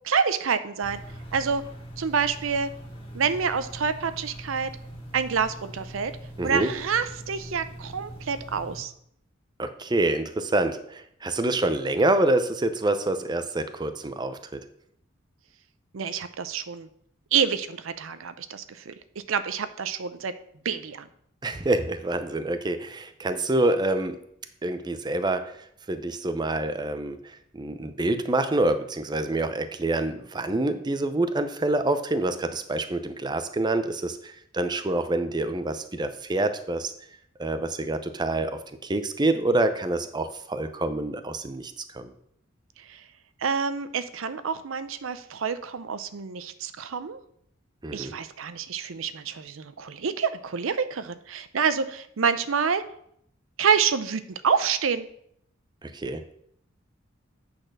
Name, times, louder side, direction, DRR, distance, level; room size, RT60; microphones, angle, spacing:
voice 1, 0.0-1.0 1.3-1.6 2.0-2.7 3.1-4.7 5.1-6.1 6.4-8.9 15.9-16.9 17.3-18.9 19.3-20.3 20.6-21.1 42.8-43.0 43.4-47.2 47.9-52.8 53.6-55.1, right 6 dB, 75° right, 12 dB, 0.6 m, -27 dB
sound 1, 0.8-8.8, right 1 dB, 30° left, 2.0 m, -42 dB
voice 2, 6.4-6.7 9.6-14.6 21.4-24.2 24.6-25.5 25.9-36.9 37.4-42.1 47.8-48.1 55.8-56.2, right 2 dB, 20° right, 9 dB, 0.6 m, -27 dB
8.7 x 4.2 x 6.5 m, 0.69 s
head